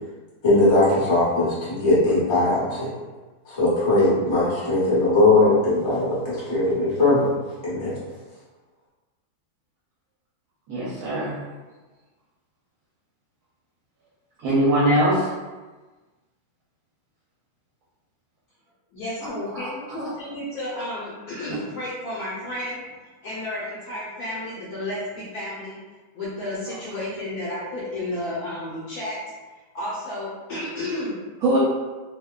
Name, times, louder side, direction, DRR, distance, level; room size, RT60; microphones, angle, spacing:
voice 1, 0.4-2.9 3.5-7.3 7.6-8.0, left 2 dB, 30° left, -8 dB, 0.5 m, -20 dB
voice 2, 10.7-11.4 14.4-15.3 19.5-19.7 31.4-31.6, right 1 dB, 70° right, -9 dB, 1.0 m, -21 dB
voice 3, 18.9-22.9 23.2-25.8 26.1-29.2 29.7-31.2, left 1 dB, 70° left, -7 dB, 1.1 m, -32 dB
2.7 x 2.2 x 2.2 m, 1.2 s
omnidirectional pair, 1.8 m